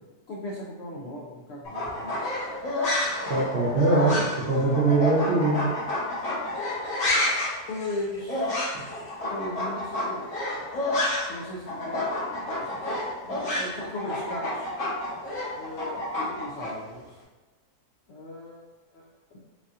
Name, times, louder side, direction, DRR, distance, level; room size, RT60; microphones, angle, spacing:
voice 1, 0.3-2.2 4.1-4.2 7.7-8.6 9.2-10.2 11.3-12.9 13.2-14.7 15.5-17.1 18.1-18.6 18.9-19.4, left 1 dB, 75° left, -4 dB, 0.6 m, -37 dB
sound 1, 1.6-11.4 11.7-16.7, left 1 dB, 60° left, 1.3 m, -29 dB
voice 2, 3.3-5.7, right 3 dB, 55° right, -7 dB, 0.7 m, -23 dB
4.1 x 2.6 x 2.4 m, 1.3 s
omnidirectional pair, 1.7 m